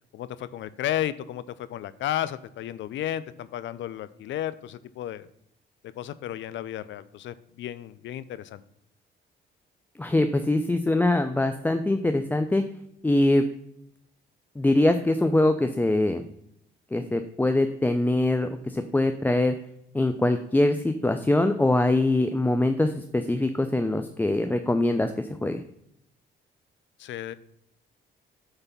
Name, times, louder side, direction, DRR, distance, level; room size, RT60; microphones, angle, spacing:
voice 1, 0.1-5.3 6.0-8.6 27.0-27.3, left 12 dB, 70° left, 16 dB, 0.5 m, -33 dB
voice 2, 10.0-12.6 13.0-13.4 14.6-16.2 16.9-19.6 19.9-25.6, left 2 dB, 10° left, 7 dB, 0.4 m, -23 dB
7.9 x 3.3 x 5.8 m, 0.77 s
cardioid pair, 90°, 20 cm